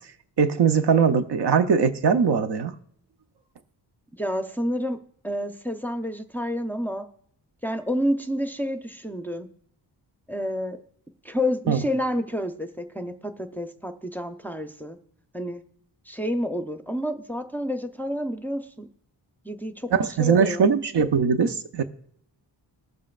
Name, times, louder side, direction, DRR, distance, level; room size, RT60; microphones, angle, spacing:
voice 1, 0.4-2.8 11.7-11.8 19.9-21.8, right 6 dB, 65° right, 0.8 m, -21 dB
voice 2, 4.2-5.0 5.2-7.1 7.6-9.5 10.3-10.8 11.2-15.0 15.3-15.6 16.1-18.9 19.4-19.9 20.2-20.7, equal, 5° left, 0.7 m, -29 dB
21.0 x 7.4 x 2.4 m
cardioid pair, 90°, 44 cm